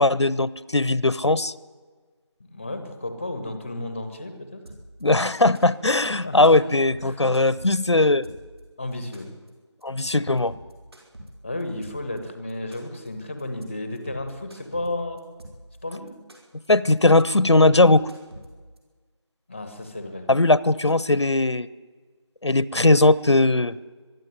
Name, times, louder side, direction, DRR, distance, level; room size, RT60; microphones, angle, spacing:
voice 1, 0.0-1.5 5.0-8.3 9.8-10.5 16.7-18.1 20.3-21.7 22.4-23.8, left 2 dB, 70° left, 20 dB, 0.8 m, -19 dB
voice 2, 2.5-4.6 6.2-6.7 7.0-7.2 8.8-9.3 11.4-15.3 15.8-16.2 19.5-20.3, left 2 dB, 10° left, 8 dB, 0.8 m, -33 dB
sound 1, 4.7-5.0 5.3-5.9 6.2-6.5 6.8-8.6 8.9-9.5 9.8-10.1 10.4-12.2 12.5-13.1 13.4-13.6 14.0-15.8 16.1-16.7 17.0-17.2 17.5-18.8, right 1 dB, 60° right, 5.5 m, -45 dB
23.0 x 12.5 x 9.6 m, 1.4 s
figure-of-eight pair, 170°, 15 cm